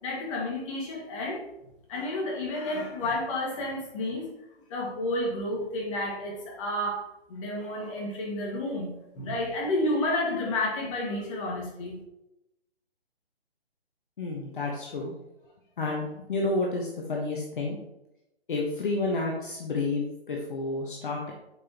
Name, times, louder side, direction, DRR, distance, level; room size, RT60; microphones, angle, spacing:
voice 1, 0.0-1.4 1.9-4.3 4.7-8.9 9.1-12.0, left 1 dB, 30° left, -2 dB, 2.0 m, -31 dB
voice 2, 14.2-15.1 15.8-17.8 18.5-21.3, left 3 dB, 50° left, -1 dB, 1.4 m, -30 dB
8.2 x 5.4 x 3.0 m, 0.89 s
figure-of-eight pair, 140°, 32 cm